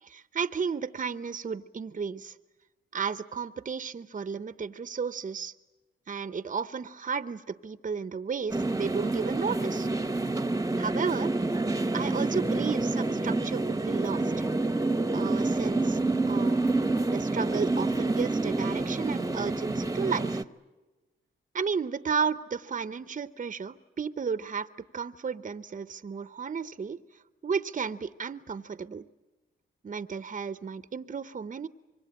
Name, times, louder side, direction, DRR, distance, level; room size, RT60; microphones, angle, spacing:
voice 1, 0.0-2.3 2.9-5.5 6.1-9.9 10.8-11.3 11.9-14.5 15.1-16.0 16.3-16.6 17.1-20.4 21.5-24.7 24.9-27.0 27.4-29.1 29.8-31.7, right 6 dB, 40° right, 14 dB, 0.8 m, -33 dB
sound 1, 8.5-20.4, right 2 dB, 15° right, 1.0 m, -28 dB
25.5 x 22.5 x 8.9 m, 1.1 s
cardioid pair, 70°, 20 cm